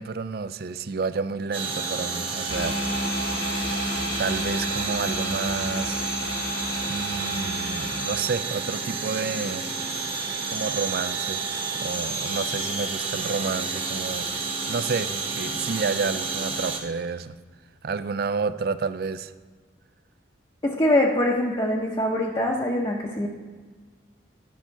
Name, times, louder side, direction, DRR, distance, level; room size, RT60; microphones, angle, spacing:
voice 1, 0.0-3.2 4.2-6.0 6.9-9.7 10.5-11.4 11.8-17.3 17.8-19.3, right 4 dB, 55° right, 13 dB, 0.4 m, -30 dB
sound 1, 1.5-16.8, right 4 dB, 30° right, 1.1 m, -30 dB
sound 2, 2.5-8.2, left 1 dB, 60° left, 1.0 m, -31 dB
voice 2, 20.6-23.3, left 1 dB, 25° left, -3 dB, 0.8 m, -23 dB
11.5 x 5.7 x 4.5 m, 1.4 s
head